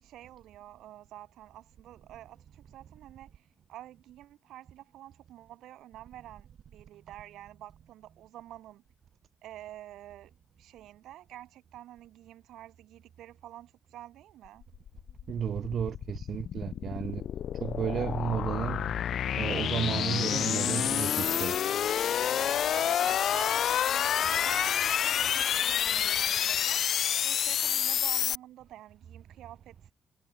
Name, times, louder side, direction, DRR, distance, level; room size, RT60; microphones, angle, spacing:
voice 1, 0.0-8.8 9.4-10.3 10.6-14.6 22.7-26.8 27.2-29.8, right 13 dB, 85° right, 4.7 m, -49 dB
sound 1, 14.6-28.4, left 9 dB, 65° left, 0.5 m, -28 dB
voice 2, 15.3-17.2 17.5-19.0 19.3-21.6, right 8 dB, 60° right, 2.6 m, -33 dB
cardioid pair, 90°, 0 cm